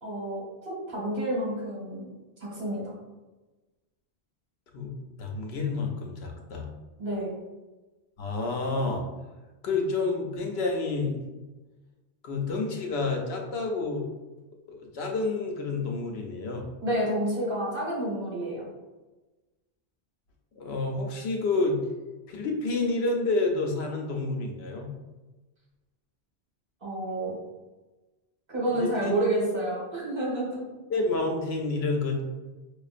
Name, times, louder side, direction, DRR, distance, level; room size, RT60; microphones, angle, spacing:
voice 1, 0.0-2.1 2.4-2.9 7.0-7.3 16.8-18.6 26.8-27.3 28.5-30.6, right 1 dB, 60° right, -5 dB, 1.5 m, -29 dB
voice 2, 5.2-6.7 8.2-9.0 9.6-11.2 12.2-14.1 14.7-16.7 20.6-21.8 22.3-24.9 28.7-29.1 30.9-32.2, left 3 dB, 80° left, 2 dB, 0.9 m, -29 dB
5.0 x 2.4 x 2.4 m, 1.2 s
omnidirectional pair, 1.1 m